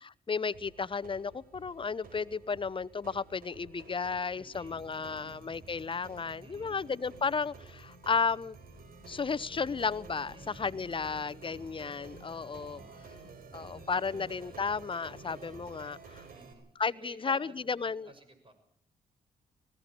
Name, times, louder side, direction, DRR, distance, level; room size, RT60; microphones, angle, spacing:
voice 1, 0.0-8.6 9.1-12.8 13.5-16.2 16.8-18.1, left 5 dB, 35° left, 18 dB, 0.8 m, -33 dB
sound 1, 0.5-16.5, right 4 dB, 70° right, 4.9 m, -52 dB
voice 2, 4.3-5.3 6.4-6.8 10.3-10.7 12.5-13.1 14.0-14.3 16.3-18.6, right 3 dB, 35° right, 8 dB, 6.5 m, -55 dB
sound 2, 8.7-15.9, equal, 15° right, 5.2 m, -55 dB
19.5 x 16.5 x 8.3 m, 0.68 s
supercardioid pair, 60°, 15 cm